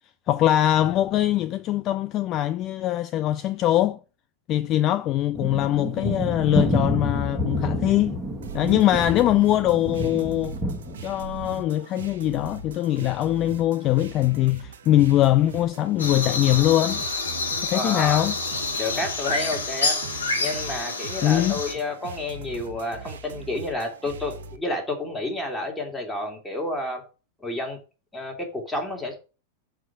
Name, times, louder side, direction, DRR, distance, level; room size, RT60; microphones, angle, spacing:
voice 1, 0.3-4.0 4.5-8.2 8.5-10.6 11.0-17.0 17.6-18.3 21.2-21.6, left 13 dB, 35° left, 0.3 m, -22 dB
sound 1, 5.3-11.6, equal, 10° right, 1.5 m, -29 dB
sound 2, 8.4-24.6, right 5 dB, 60° right, 0.7 m, -41 dB
sound 3, 16.0-21.7, left 3 dB, 75° left, 1.2 m, -28 dB
voice 2, 17.7-18.2 18.8-19.9 20.3-27.0 27.4-27.8 28.1-29.2, left 2 dB, 5° left, 2.2 m, -30 dB
6.3 x 4.6 x 6.0 m
figure-of-eight pair, 90°, 0 cm